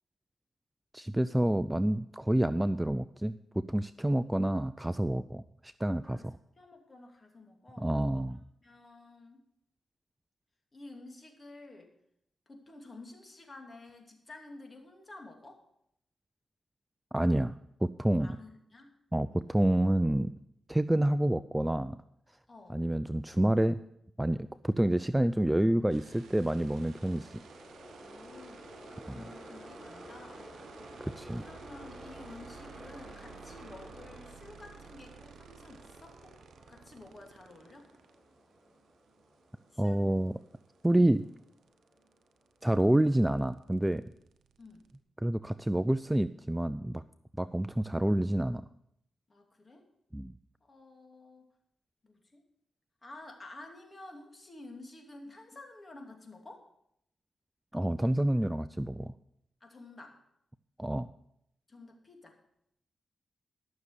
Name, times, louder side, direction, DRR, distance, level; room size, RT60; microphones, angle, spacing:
voice 1, 0.9-3.4 3.7-6.3 7.8-8.4 17.1-17.5 17.8-18.4 19.1-20.3 20.7-22.0 22.7-23.8 24.2-27.4 29.1-29.2 31.0-31.4 39.8-40.3 40.8-41.2 42.6-44.0 45.2-47.0 47.4-48.6 50.1-50.3 57.7-59.1 60.8-61.1, right 1 dB, 10° right, 13 dB, 0.4 m, -28 dB
voice 2, 6.0-8.0 8.3-9.4 10.7-11.9 12.5-15.6 18.2-18.9 19.3-19.5 22.5-22.8 28.0-30.5 31.4-36.4 36.7-37.9 39.7-40.1 44.6-44.9 49.3-49.9 50.6-51.5 52.0-52.4 53.0-56.7 59.6-60.2 61.7-62.4, left 2 dB, 35° left, 3 dB, 2.6 m, -51 dB
Train, 25.7-42.7, right 1 dB, 40° right, 5.2 m, -52 dB
sound 1, 25.9-38.1 40.3-40.4 40.6-45.0, right 7 dB, 90° right, 0.7 m, -55 dB
12.5 x 6.6 x 6.5 m, 0.74 s
cardioid pair, 65°, 0 cm